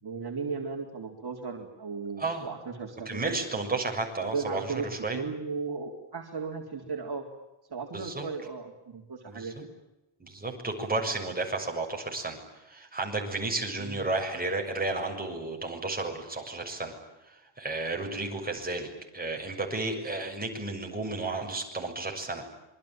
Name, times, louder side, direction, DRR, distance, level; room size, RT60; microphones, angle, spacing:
voice 1, 0.0-3.4 4.2-7.2 7.7-9.7 13.8-14.0, right 4 dB, 55° right, 1 dB, 4.1 m, -36 dB
voice 2, 3.1-5.2 7.9-8.3 9.3-9.5 10.2-12.4 12.7-16.9 17.3-18.9 19.1-22.4, right 2 dB, 20° right, 1 dB, 6.9 m, -32 dB
27.0 x 23.5 x 9.1 m, 0.95 s
wide cardioid pair, 160°, 47 cm